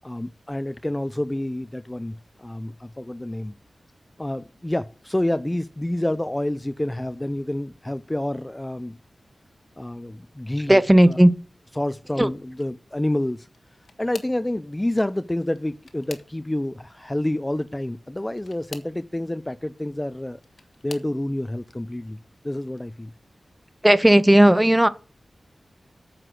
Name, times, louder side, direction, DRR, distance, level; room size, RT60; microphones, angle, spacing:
voice 1, 0.0-3.5 4.2-9.0 9.8-10.8 11.1-11.2 11.8-13.5 14.0-20.4 20.8-22.2 22.4-23.1, left 1 dB, 15° left, 0.5 m, -28 dB
voice 2, 10.7-11.3 12.2-12.3 23.8-24.9, right 1 dB, 10° right, 0.9 m, -15 dB
sound 1, 13.4-14.5 15.4-16.7 18.3-19.0 20.1-21.2 21.9-22.3 22.7-22.8 24.2-24.3, left 4 dB, 85° left, 1.5 m, -45 dB
9.2 x 6.0 x 8.0 m
wide cardioid pair, 80°, 0 cm